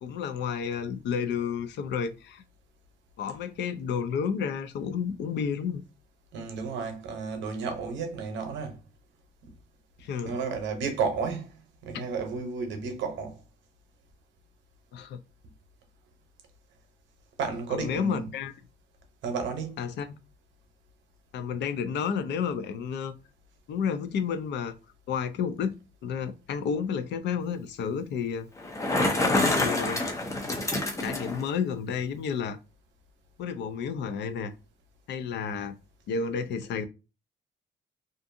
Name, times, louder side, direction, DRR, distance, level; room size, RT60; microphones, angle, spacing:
voice 1, 0.0-2.4 3.2-5.8 10.0-10.4 11.9-12.0 14.9-15.2 17.7-18.5 19.8-20.1 21.3-23.1 23.7-24.7 25.1-25.7 26.0-28.5 29.2-30.0 31.0-32.6 33.4-34.5 35.1-35.7 36.1-36.8, left 6 dB, 70° left, 0.4 m, -31 dB
voice 2, 6.3-8.7 10.2-13.4 17.4-18.3 19.2-19.9, right 5 dB, 90° right, 0.8 m, -32 dB
Bicycle, 28.6-31.4, left 2 dB, 15° left, 0.5 m, -27 dB
2.6 x 2.4 x 2.5 m
cardioid pair, 170°, 19 cm